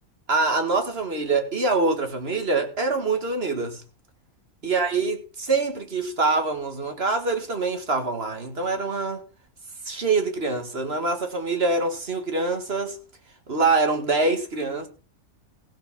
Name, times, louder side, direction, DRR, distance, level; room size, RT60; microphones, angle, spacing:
voice 1, 0.3-3.8 4.6-9.2 9.8-13.0 13.5-14.9, right 3 dB, 45° right, 2.1 m, -25 dB
15.5 x 7.2 x 5.8 m
omnidirectional pair, 1.5 m